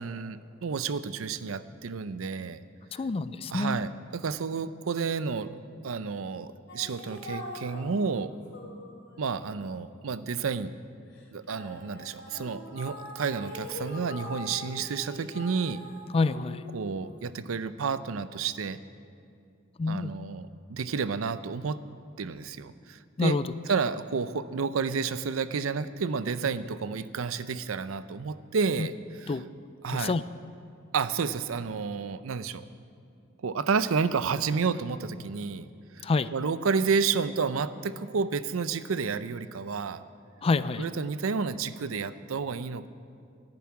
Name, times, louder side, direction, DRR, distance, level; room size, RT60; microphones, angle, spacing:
voice 1, 0.0-2.6 3.5-5.5 5.8-8.3 9.2-10.7 11.3-15.8 16.7-18.8 19.9-21.8 22.2-23.4 23.7-29.4 29.8-30.1 30.9-32.7 33.4-35.7 36.0-36.1 36.3-40.0 40.8-42.9, right 5 dB, 80° right, 14 dB, 0.5 m, -30 dB
voice 2, 2.9-3.8 16.1-16.6 19.8-20.2 23.2-23.4 29.3-29.4 29.9-30.2 36.0-36.3 40.4-40.8, left 3 dB, 30° left, 15 dB, 0.3 m, -27 dB
sound 1, 6.7-10.7 11.2-17.7, left 1 dB, 55° left, 2.7 m, -43 dB
11.0 x 10.5 x 8.5 m, 2.4 s
head